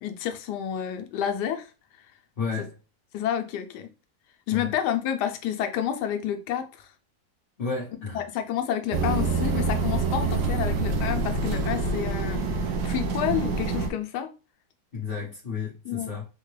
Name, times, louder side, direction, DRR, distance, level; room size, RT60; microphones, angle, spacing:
voice 1, 0.0-1.7 3.1-3.9 4.5-6.9 8.1-14.3 15.8-16.2, left 10 dB, 90° left, 1.2 m, -29 dB
voice 2, 2.4-2.7 4.5-4.7 7.6-8.2 14.9-16.2, left 5 dB, 40° left, 1.0 m, -32 dB
sound 1, 8.9-13.9, right 3 dB, 80° right, 1.2 m, -26 dB
3.7 x 2.1 x 3.2 m
omnidirectional pair, 1.7 m